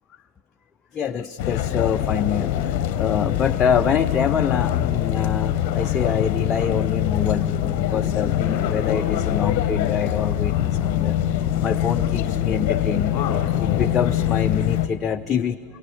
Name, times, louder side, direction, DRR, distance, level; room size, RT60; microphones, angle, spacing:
voice 1, 0.9-15.6, left 7 dB, 25° left, 9 dB, 0.5 m, -26 dB
sound 1, 1.4-14.9, left 11 dB, 45° left, 0.9 m, -23 dB
24.5 x 23.5 x 7.5 m, 2.6 s
figure-of-eight pair, 90°, 0 cm